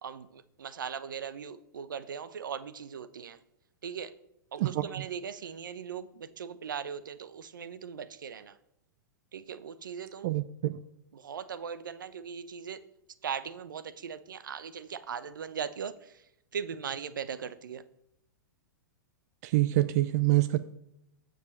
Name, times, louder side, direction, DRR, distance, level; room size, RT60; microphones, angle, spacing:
voice 1, 0.0-3.4 3.8-4.1 4.5-8.5 9.3-10.3 11.1-12.8 13.2-15.9 16.5-17.8, right 7 dB, 80° right, 13 dB, 0.9 m, -39 dB
voice 2, 10.2-10.8 19.4-20.6, right 16 dB, 55° right, 12 dB, 0.6 m, -26 dB
15.0 x 5.3 x 6.5 m, 0.81 s
hypercardioid pair, 115°, 11 cm